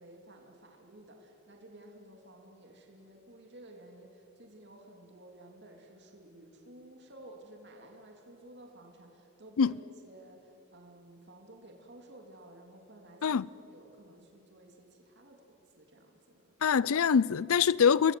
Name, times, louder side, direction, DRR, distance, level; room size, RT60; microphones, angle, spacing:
voice 1, 0.0-16.5, right 1 dB, 50° right, 2.8 m, -54 dB
voice 2, 16.6-18.1, left 6 dB, 80° left, 0.5 m, -24 dB
28.0 x 21.0 x 7.7 m
head